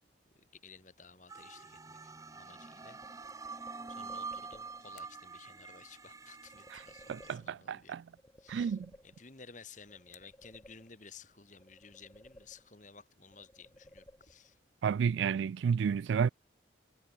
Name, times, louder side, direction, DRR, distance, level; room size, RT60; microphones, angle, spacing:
voice 1, 0.3-3.0 3.6-8.0 8.4-8.8 9.0-14.6, left 5 dB, 40° left, 2.3 m, -55 dB
sound 1, 0.5-14.7, left 11 dB, 65° left, 7.6 m, -74 dB
sound 2, 1.3-7.3, right 4 dB, 20° right, 0.6 m, -46 dB
sound 3, 3.0-5.0 6.5-7.8 8.2-9.5 9.9-11.2 11.6-13.0 13.3-14.7, left 1 dB, 15° left, 1.3 m, -59 dB
voice 2, 7.1-8.0 8.5-8.9 14.8-16.3, right 7 dB, 75° right, 0.3 m, -31 dB
head